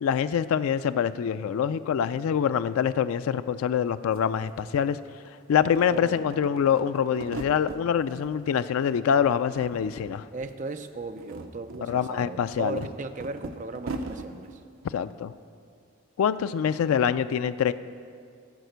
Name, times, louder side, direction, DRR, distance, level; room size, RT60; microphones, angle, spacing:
voice 1, 0.0-5.0 5.5-10.2 11.8-12.9 14.9-15.3 16.2-17.7, left 8 dB, 85° left, 13 dB, 0.3 m, -25 dB
sound 1, 3.8-3.9 4.1-5.3 5.6-7.8 8.2-9.0 9.2-10.1 10.4-10.5 11.0-14.3, right 2 dB, 75° right, 0.7 m, -40 dB
voice 2, 5.9-6.3 10.3-14.5, right 3 dB, 35° right, 8 dB, 0.4 m, -36 dB
13.0 x 5.0 x 7.9 m, 2.3 s
head